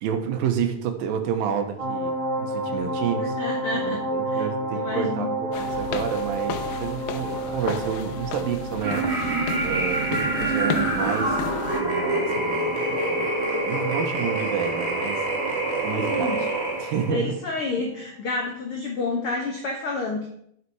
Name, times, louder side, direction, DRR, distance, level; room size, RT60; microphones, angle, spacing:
voice 1, 0.0-3.4 3.7-9.1 9.6-11.4 11.8-13.3 13.7-15.2 15.8-16.5 16.8-17.4, right 8 dB, 75° right, 6 dB, 2.8 m, -29 dB
sound 1, 1.8-17.3 17.7-17.8, right 1 dB, 10° right, 2.2 m, -32 dB
voice 2, 3.2-4.0 4.3-4.4 4.7-5.3 15.9-16.4 17.1-20.3, left 3 dB, 60° left, 1 dB, 1.5 m, -29 dB
sound 2, 5.5-11.8, left 9 dB, 85° left, 2.5 m, -34 dB
sound 3, 8.8-17.1, right 2 dB, 30° right, 1.3 m, -26 dB
11.5 x 6.7 x 4.7 m, 0.69 s
omnidirectional pair, 4.2 m